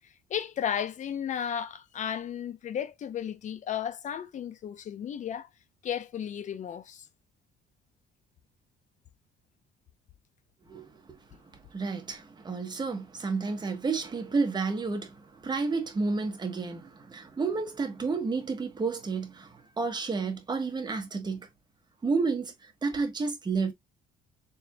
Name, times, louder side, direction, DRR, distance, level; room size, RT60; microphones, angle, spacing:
voice 1, 0.3-5.5 5.8-7.0, left 9 dB, 45° left, 0.6 m, -34 dB
voice 2, 11.7-15.1 15.4-19.5 19.8-21.5 22.0-22.5 22.8-23.7, right 4 dB, 25° right, 1.2 m, -30 dB
4.4 x 3.5 x 2.2 m
cardioid pair, 110°, 17 cm